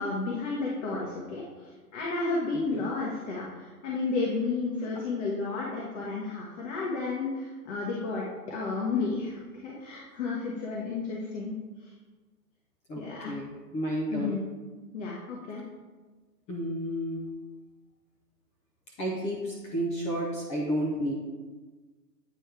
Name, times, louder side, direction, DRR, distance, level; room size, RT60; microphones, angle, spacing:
voice 1, 0.0-11.5 11.8-11.9 13.0-13.4 14.1-14.4 14.9-15.6, left 3 dB, 50° left, -4 dB, 1.4 m, -32 dB
voice 2, 12.9-14.4 16.5-17.3 19.0-21.1, equal, 15° left, -3 dB, 0.6 m, -31 dB
9.0 x 4.3 x 3.3 m, 1.3 s
hypercardioid pair, 125°, 48 cm